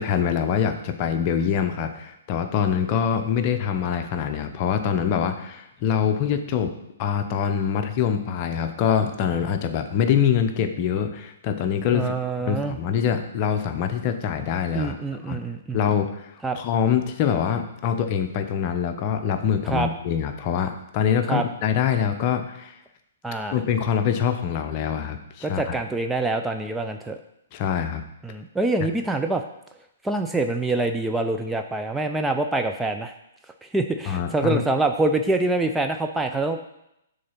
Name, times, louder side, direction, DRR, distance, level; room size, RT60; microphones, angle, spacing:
voice 1, 0.0-6.7 7.0-12.1 12.5-15.0 15.3-15.4 15.7-16.3 16.5-22.7 23.5-25.7 27.5-28.0 34.1-34.6, left 8 dB, 40° left, 7 dB, 0.7 m, -24 dB
voice 2, 11.9-12.8 14.7-15.8 16.4-16.6 19.6-19.9 21.3-21.4 23.2-23.6 25.4-27.2 28.2-29.4 30.0-33.1 33.7-36.6, right 2 dB, 5° right, 5 dB, 0.4 m, -25 dB
6.5 x 3.9 x 5.8 m, 0.82 s
figure-of-eight pair, 125°, 0 cm